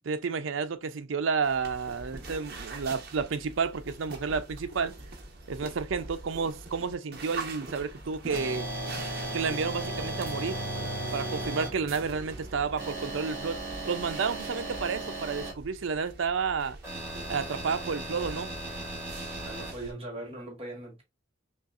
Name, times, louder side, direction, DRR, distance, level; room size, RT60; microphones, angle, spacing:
voice 1, 0.0-4.9 5.5-8.7 9.3-10.7 11.1-13.6 13.8-16.8 17.3-18.5, right 5 dB, 80° right, 0.5 m, -31 dB
sound 1, 1.4-19.9, right 3 dB, 50° right, 1.0 m, -44 dB
sound 2, 3.8-14.6, right 3 dB, 35° left, 1.2 m, -47 dB
sound 3, 8.3-11.7 12.8-15.5 16.8-19.7, right 1 dB, 15° right, 1.7 m, -36 dB
voice 2, 19.4-21.0, right 1 dB, 30° right, 1.5 m, -40 dB
5.4 x 2.4 x 2.4 m
head